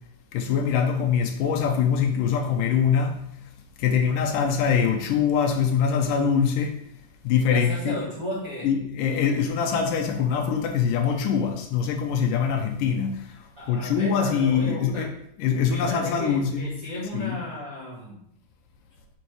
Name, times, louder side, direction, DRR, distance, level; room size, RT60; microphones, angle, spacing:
voice 1, 0.3-3.2 3.8-6.8 7.2-8.0 8.6-15.1 15.4-16.7 17.1-17.4, left 7 dB, 80° left, 4 dB, 2.3 m, -23 dB
voice 2, 7.4-8.7 13.6-15.1 15.7-18.2, left 1 dB, 40° right, -8 dB, 1.3 m, -34 dB
6.3 x 4.2 x 4.7 m, 0.75 s
omnidirectional pair, 3.9 m